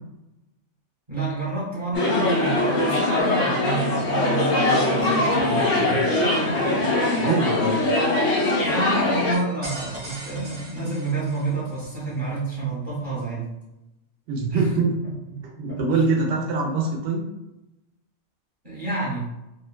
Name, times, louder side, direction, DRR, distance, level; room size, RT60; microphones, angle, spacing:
voice 1, 1.1-6.9 8.6-13.5 14.5-14.7 15.0-15.1 15.7-15.8 18.6-19.3, right 3 dB, 45° right, -10 dB, 1.1 m, -29 dB
sound 1, 1.9-9.4, left 2 dB, 75° left, 1.0 m, -22 dB
voice 2, 7.2-7.8 14.3-15.0 15.6-17.2, right 4 dB, 75° right, -1 dB, 0.9 m, -23 dB
sound 2, 9.3-11.9, right 1 dB, 15° right, 0.4 m, -39 dB
2.7 x 2.1 x 2.2 m, 0.93 s
omnidirectional pair, 1.2 m